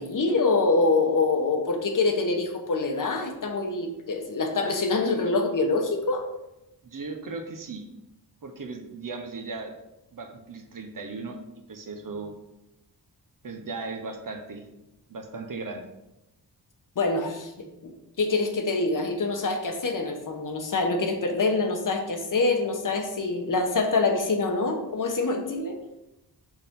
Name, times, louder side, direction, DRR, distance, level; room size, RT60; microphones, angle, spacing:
voice 1, 0.0-6.2 17.0-17.5 17.8-17.9 18.2-25.8, left 3 dB, 50° left, 4 dB, 1.0 m, -25 dB
voice 2, 6.8-7.9 8.4-9.8 10.1-11.4 11.7-12.3 13.4-14.7 15.1-15.8, right 3 dB, 55° right, 5 dB, 1.0 m, -37 dB
6.4 x 5.9 x 3.7 m, 0.91 s
wide cardioid pair, 120°, 40 cm